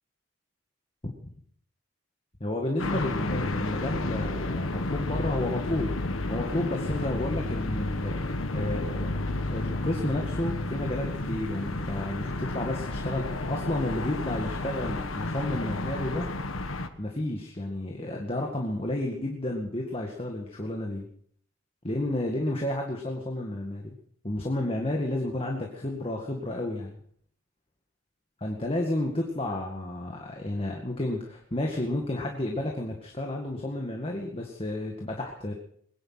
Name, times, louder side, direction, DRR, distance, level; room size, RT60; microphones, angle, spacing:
voice 1, 2.4-5.9 6.3-9.1 9.5-16.3 17.0-21.1 21.8-24.0 24.2-27.0 28.4-35.5, left 1 dB, 30° left, 1 dB, 2.0 m, -31 dB
sound 1, 2.8-16.9, left 2 dB, 85° left, 1.5 m, -31 dB
21.0 x 10.5 x 5.9 m, 0.63 s
head